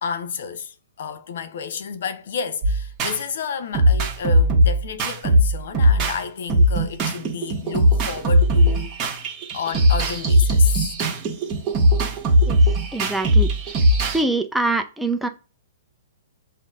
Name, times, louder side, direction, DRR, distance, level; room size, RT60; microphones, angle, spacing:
voice 1, 0.0-8.9 9.5-10.8, left 6 dB, 65° left, 0.7 m, -31 dB
sound 1, 2.6-3.2 3.7-6.2 6.5-14.2, equal, 30° right, 1.3 m, -19 dB
voice 2, 12.9-13.5 14.1-15.3, right 2 dB, 5° right, 0.6 m, -24 dB
7.2 x 2.7 x 2.4 m
hypercardioid pair, 125°, 0 cm